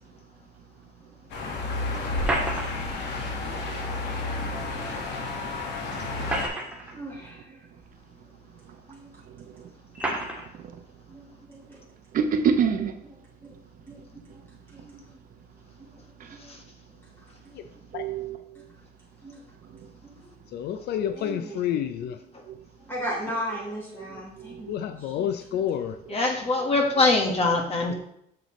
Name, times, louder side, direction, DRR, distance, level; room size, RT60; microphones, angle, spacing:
sound 1, 1.3-6.5, left 2 dB, 85° left, 1.7 m, -31 dB
sound 2, 2.1-3.0 4.7-4.8 6.0-7.0 7.8-7.9 8.9-9.0 9.9-10.5, right 1 dB, 5° right, 1.7 m, -29 dB
voice 1, 6.9-7.6 8.9-9.1 11.1-11.8 13.4-13.5 13.8-14.4 14.7-15.2 16.4-16.6 17.4-17.6 18.5-18.6 19.2-19.4 19.7-20.1 21.1-21.6 22.8-24.7 25.0-25.3, equal, 10° left, -3 dB, 3.1 m, -37 dB
voice 2, 12.1-12.9 17.9-18.4 21.0-21.8 24.5-24.6, right 6 dB, 50° right, 7 dB, 0.7 m, -26 dB
voice 3, 20.5-22.2 24.7-26.0, left 10 dB, 70° left, 9 dB, 0.5 m, -29 dB
voice 4, 26.1-27.9, left 3 dB, 35° left, 3 dB, 1.4 m, -23 dB
7.9 x 6.8 x 3.1 m, 0.74 s
cardioid pair, 145°, 18 cm